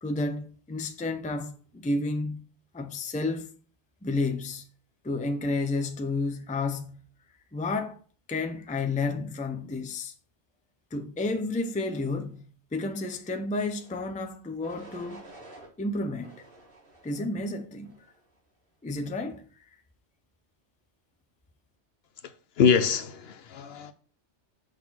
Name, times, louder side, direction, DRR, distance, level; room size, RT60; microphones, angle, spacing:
voice 1, 0.0-2.4 2.7-3.5 4.0-4.7 5.0-7.0 7.5-8.0 8.3-10.1 10.9-15.2 15.8-16.3 17.0-17.9 18.8-19.4, left 3 dB, 10° left, 0.4 m, -31 dB
sound 1, 13.7-14.1 14.6-15.7 16.2-17.3 17.8-18.3, right 2 dB, 50° right, 1.8 m, -50 dB
voice 2, 22.2-23.9, left 6 dB, 65° left, 0.7 m, -25 dB
6.5 x 3.8 x 6.0 m
omnidirectional pair, 1.2 m